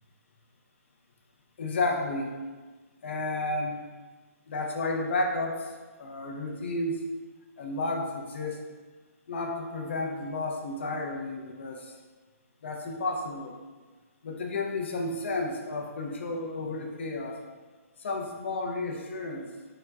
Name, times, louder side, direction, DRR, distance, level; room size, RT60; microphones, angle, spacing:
voice 1, 1.6-2.3 3.0-3.9 4.5-5.7 6.0-7.0 7.6-8.6 9.3-11.9 12.6-13.6 14.2-17.4 18.0-19.5, left 2 dB, 50° left, 1 dB, 0.6 m, -32 dB
3.8 x 2.2 x 4.4 m, 1.4 s
hypercardioid pair, 170°, 8 cm